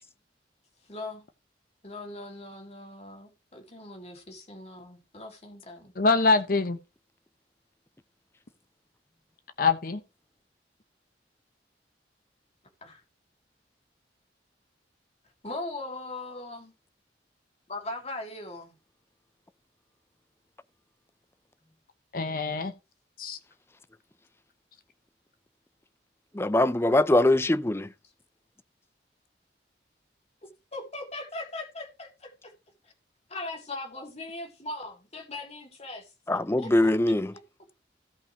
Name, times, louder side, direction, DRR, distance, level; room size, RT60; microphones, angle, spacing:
voice 1, 0.9-1.3 1.8-5.9 12.8-13.0 15.4-16.7 17.7-18.8 30.4-32.5 32.8-32.9 33.3-36.9, left 2 dB, 35° left, 3.2 m, -40 dB
voice 2, 6.0-6.8 9.6-10.0 22.1-22.7 23.2-23.4, left 4 dB, 55° left, 0.9 m, -24 dB
voice 3, 26.3-27.9 36.3-37.3, left 1 dB, 15° left, 0.5 m, -22 dB
16.5 x 5.6 x 3.2 m
head